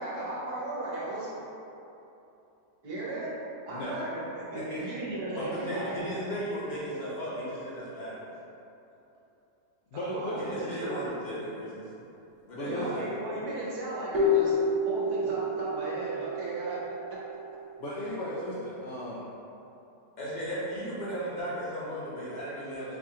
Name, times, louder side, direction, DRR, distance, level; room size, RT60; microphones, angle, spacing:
voice 1, 0.0-1.4 2.8-3.3 3.7-5.9 10.1-11.1 12.6-16.8, right 2 dB, 70° right, -7 dB, 1.4 m, -36 dB
voice 2, 3.7-4.0 4.5-4.9 9.9-10.6 12.5-13.1 17.8-19.2, left 1 dB, 80° left, -8 dB, 0.6 m, -36 dB
voice 3, 5.3-8.2 10.4-11.9 12.5-13.1 20.2-23.0, equal, 35° left, -9 dB, 0.7 m, -35 dB
sound 1, 14.1-17.9, left 2 dB, 30° right, 1.0 m, -29 dB
4.7 x 2.4 x 2.8 m, 2.9 s
omnidirectional pair, 1.8 m